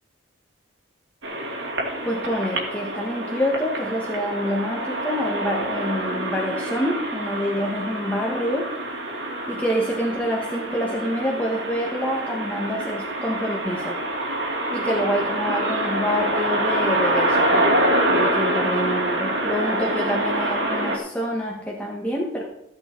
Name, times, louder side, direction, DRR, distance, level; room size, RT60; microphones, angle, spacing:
sound 1, 1.2-21.0, right 1 dB, 60° right, 2.6 m, -26 dB
voice 1, 2.0-8.7 9.5-14.0 14.7-22.4, equal, 5° left, -2 dB, 1.3 m, -27 dB
14.5 x 8.0 x 4.4 m, 0.81 s
head